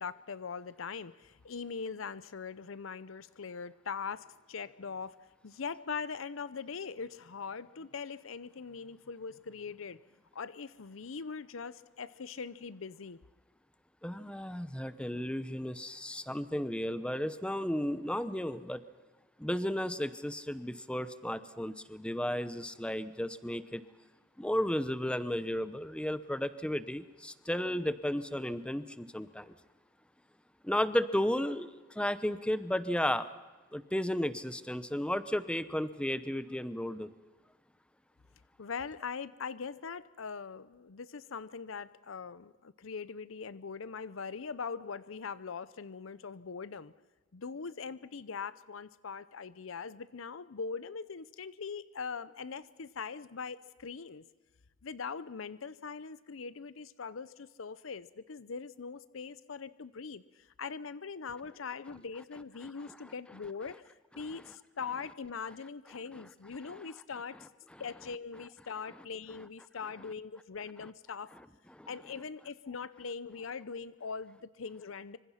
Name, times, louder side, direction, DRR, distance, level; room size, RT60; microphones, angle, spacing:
voice 1, 0.0-5.2 5.4-10.0 10.3-13.2 38.6-46.9 47.3-54.2 54.8-67.4 67.8-71.3 71.9-75.2, left 5 dB, 85° left, 16 dB, 0.7 m, -41 dB
voice 2, 14.0-18.8 19.4-23.8 24.4-29.5 30.6-33.3 33.7-37.1 62.9-63.0 66.7-66.8 71.7-71.9, left 1 dB, 5° left, 13 dB, 0.8 m, -33 dB
26.0 x 25.5 x 5.8 m, 1.3 s
head